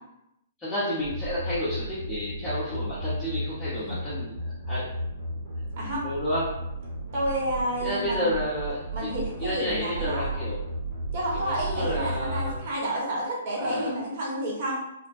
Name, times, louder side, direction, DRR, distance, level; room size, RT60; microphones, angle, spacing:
voice 1, 0.6-4.3 4.7-4.9 6.0-6.6 7.8-9.1 9.4-10.6 11.3-12.6 13.6-13.9, left 1 dB, 15° left, -11 dB, 0.7 m, -31 dB
sound 1, 1.0-12.6, right 1 dB, 80° right, 1.1 m, -34 dB
voice 2, 7.1-8.3 8.9-10.5 11.1-14.8, right 1 dB, 45° right, -5 dB, 1.1 m, -30 dB
2.5 x 2.1 x 2.4 m, 0.83 s
hypercardioid pair, 155°, 0 cm